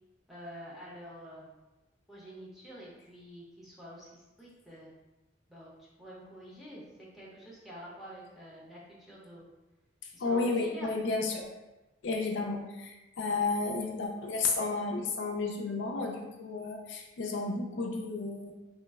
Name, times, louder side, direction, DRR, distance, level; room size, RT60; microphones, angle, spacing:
voice 1, 0.3-1.5 2.1-4.9 5.5-6.8 7.1-9.5 10.1-10.9, equal, ahead, -7 dB, 0.7 m, -48 dB
voice 2, 10.2-11.4 12.0-18.5, left 3 dB, 75° left, 1 dB, 0.4 m, -32 dB
3.1 x 2.0 x 3.4 m, 1.0 s
head